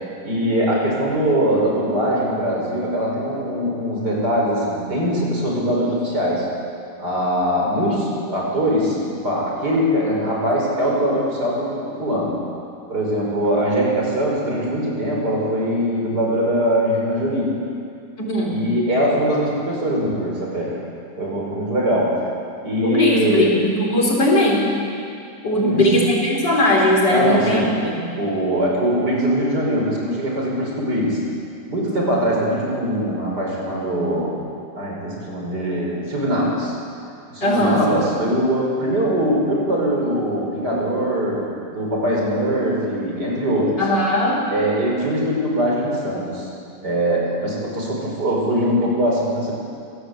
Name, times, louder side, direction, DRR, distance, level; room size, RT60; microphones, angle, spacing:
voice 1, 0.2-6.5 7.0-12.4 12.9-17.6 18.4-20.8 21.2-22.2 22.6-23.6 25.6-25.9 27.1-27.8 28.2-31.2 31.7-34.4 34.8-36.7 37.3-43.8 44.5-46.5 46.8-49.5, equal, 65° right, -2 dB, 6.3 m, -22 dB
voice 2, 18.2-18.6 22.8-24.6 25.4-28.1 37.4-37.8 43.8-44.5, left 1 dB, 80° left, -2 dB, 5.1 m, -19 dB
25.5 x 17.5 x 8.3 m, 2.4 s
omnidirectional pair, 1.9 m